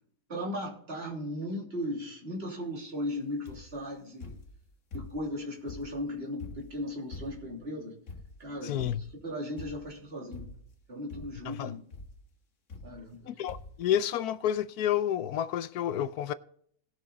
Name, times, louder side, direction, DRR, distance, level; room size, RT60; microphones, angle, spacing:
voice 1, 0.3-4.4 4.9-7.9 8.4-10.5 10.9-11.8 12.8-13.3, left 1 dB, 40° right, 3.3 m, -37 dB
sound 1, 3.5-3.8 4.2-5.3 5.7-7.6 8.1-8.5 8.8-9.2 9.6-10.0 10.3-10.8 11.1-11.5 11.9-12.2 12.7-13.2 13.5-13.8 14.6-14.7 14.9-15.0, left 3 dB, 55° left, 1.8 m, -45 dB
voice 2, 8.6-9.0 11.5-11.7 13.3-16.3, left 10 dB, 80° left, 1.1 m, -30 dB
18.5 x 6.3 x 4.0 m
omnidirectional pair, 1.6 m